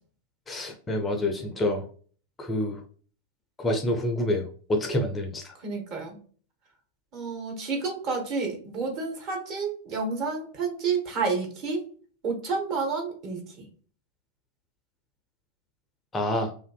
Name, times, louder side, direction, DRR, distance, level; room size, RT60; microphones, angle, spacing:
voice 1, 0.5-1.8 2.4-2.8 3.6-4.4 4.7-5.4 16.1-16.5, left 1 dB, 15° left, 4 dB, 0.4 m, -27 dB
voice 2, 5.6-6.2 7.1-11.8 12.2-13.7, right 4 dB, 40° right, 1 dB, 0.8 m, -30 dB
2.5 x 2.4 x 2.2 m, 0.43 s
figure-of-eight pair, 90°, 0 cm